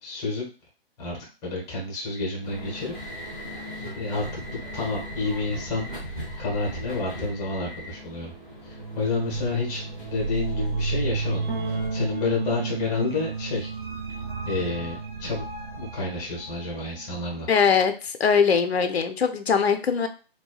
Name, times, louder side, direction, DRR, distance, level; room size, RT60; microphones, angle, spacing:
voice 1, 0.0-0.4 1.0-2.9 3.9-5.9 6.4-8.3 8.6-13.7 14.5-15.4 15.8-17.5, left 3 dB, 10° left, -3 dB, 0.8 m, -30 dB
sound 1, 2.4-11.9, right 1 dB, 10° right, 0.4 m, -36 dB
sound 2, 8.7-17.0, right 3 dB, 50° right, 1.0 m, -33 dB
Bass guitar, 11.5-17.7, right 5 dB, 75° right, 1.2 m, -37 dB
voice 2, 17.5-20.1, left 6 dB, 80° left, 8 dB, 0.6 m, -21 dB
4.1 x 2.2 x 2.3 m, 0.35 s
figure-of-eight pair, 145°, 31 cm